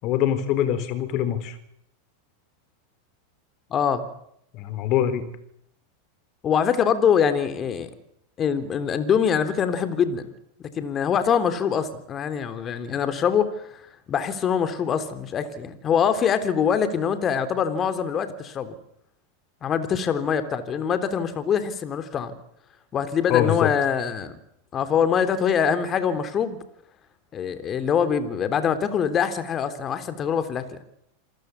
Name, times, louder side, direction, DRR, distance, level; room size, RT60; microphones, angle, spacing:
voice 1, 0.0-1.6 4.5-5.2 23.3-23.7, left 11 dB, 50° left, 12 dB, 4.3 m, -23 dB
voice 2, 3.7-4.0 6.4-7.9 8.4-10.2 10.8-13.7 14.1-18.7 19.6-22.3 22.9-24.4 24.7-26.6 27.3-30.8, left 7 dB, 30° left, 10 dB, 3.5 m, -24 dB
28.0 x 20.0 x 8.4 m, 0.73 s
hypercardioid pair, 100°, 0 cm